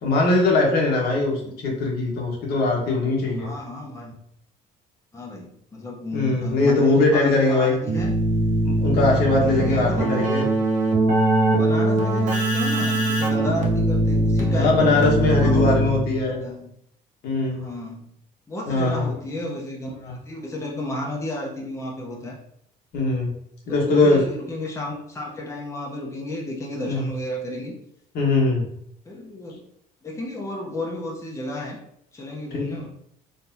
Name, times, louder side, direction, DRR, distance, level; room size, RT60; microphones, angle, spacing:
voice 1, 0.0-3.5 6.1-7.7 8.6-10.4 14.5-16.4 17.2-17.7 18.7-19.1 20.1-20.2 22.9-23.3 23.7-24.2 26.9-27.0 28.1-28.6 32.5-32.7, left 2 dB, 70° left, -1 dB, 1.4 m, -21 dB
voice 2, 3.4-4.2 5.1-8.1 9.2-10.3 11.5-15.8 16.2-16.7 17.5-18.1 18.5-22.4 23.7-27.7 29.1-29.6 30.0-31.8 32.1-32.9, left 1 dB, 15° left, -2 dB, 0.9 m, -32 dB
Keyboard (musical), 7.9-16.2, right 1 dB, 50° right, 1.2 m, -21 dB
4.0 x 3.3 x 2.8 m, 0.71 s
cardioid pair, 110°, 17 cm